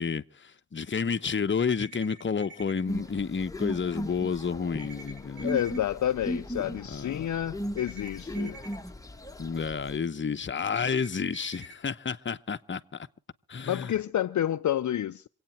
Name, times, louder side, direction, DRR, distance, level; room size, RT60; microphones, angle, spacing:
voice 1, 0.0-5.6 6.9-7.3 9.4-13.1 13.5-13.9, left 6 dB, 30° left, 0.9 m, -30 dB
sound 1, 1.8-2.8 4.8-5.8 7.8-8.8 10.7-11.7, right 2 dB, 80° right, 4.7 m, -47 dB
sound 2, 2.9-10.0, equal, 10° left, 1.2 m, -37 dB
voice 2, 5.4-8.6 13.7-15.2, left 11 dB, 55° left, 0.6 m, -29 dB
26.5 x 8.9 x 4.4 m
supercardioid pair, 55°, 37 cm